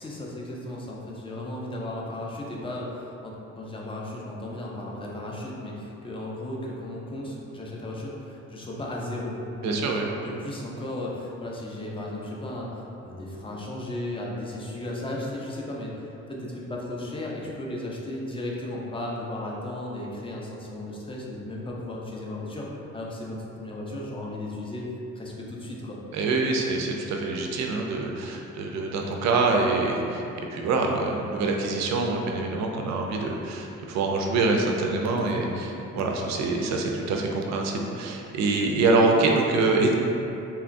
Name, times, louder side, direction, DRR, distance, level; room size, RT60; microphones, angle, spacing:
voice 1, 0.0-9.4 9.7-26.0 35.2-35.5, left 1 dB, 20° left, -3 dB, 0.4 m, -35 dB
voice 2, 9.6-10.1 26.1-30.2 30.5-35.7 35.9-39.9, right 3 dB, 65° right, 1 dB, 0.4 m, -25 dB
2.9 x 2.3 x 2.5 m, 2.8 s
cardioid pair, 90°, 30 cm